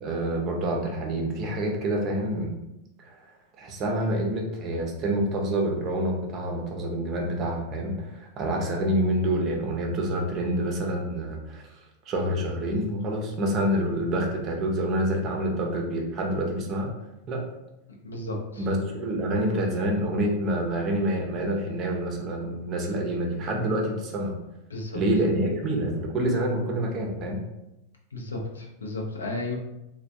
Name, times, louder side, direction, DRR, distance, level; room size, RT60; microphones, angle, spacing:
voice 1, 0.0-2.5 3.0-3.2 3.6-16.9 17.3-17.4 18.6-24.3 24.9-27.4, right 1 dB, 35° right, 1 dB, 0.6 m, -27 dB
voice 2, 18.0-18.7 24.7-25.0 28.1-29.5, left 2 dB, 70° left, 0 dB, 0.5 m, -33 dB
3.3 x 2.3 x 2.5 m, 0.91 s
figure-of-eight pair, 90°, 0 cm